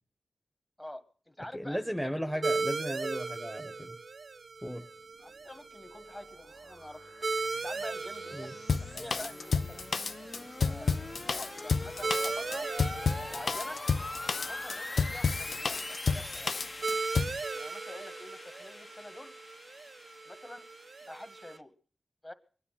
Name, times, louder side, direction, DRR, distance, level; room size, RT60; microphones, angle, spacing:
voice 1, 0.8-2.4 5.2-7.1 7.6-8.5 8.8-9.9 10.4-10.9 11.2-12.7 13.3-13.8 14.3-16.5 17.5-19.3 20.2-20.6 21.0-21.7 22.2-22.3, left 1 dB, 20° left, 9 dB, 1.7 m, -47 dB
voice 2, 1.5-4.0 4.6-4.8 8.3-8.5, equal, ahead, 6 dB, 1.1 m, -35 dB
sound 1, 2.4-21.6, right 4 dB, 65° right, 0.6 m, -39 dB
sound 2, 5.6-21.6, left 2 dB, 40° left, 1.3 m, -44 dB
Drum kit, 8.7-17.4, left 5 dB, 75° left, 0.7 m, -30 dB
22.5 x 10.0 x 5.7 m, 0.43 s
wide cardioid pair, 90°, 0 cm